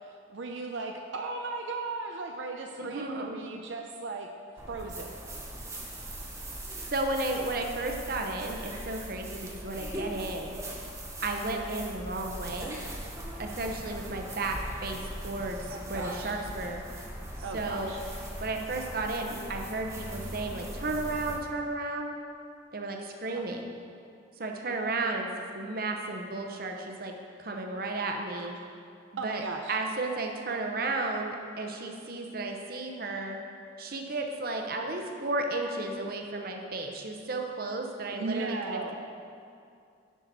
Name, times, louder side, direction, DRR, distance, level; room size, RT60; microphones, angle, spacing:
voice 1, 0.3-4.3 4.7-5.1 15.7-16.4 17.4-18.0 23.3-23.5 28.4-28.5 29.2-29.8 38.1-38.9, right 3 dB, 80° right, 3 dB, 0.5 m, -36 dB
voice 2, 2.8-3.4 6.9-10.6 11.2-12.8 13.4-16.9 17.5-17.9 18.4-22.1 22.7-23.7 24.4-25.3 25.5-28.6 29.1-29.4 29.7-33.4 33.8-38.9, right 2 dB, 50° right, 3 dB, 0.8 m, -33 dB
sound 1, 4.6-21.4, right 1 dB, 15° right, 0.9 m, -40 dB
11.0 x 5.7 x 4.0 m, 2.4 s
head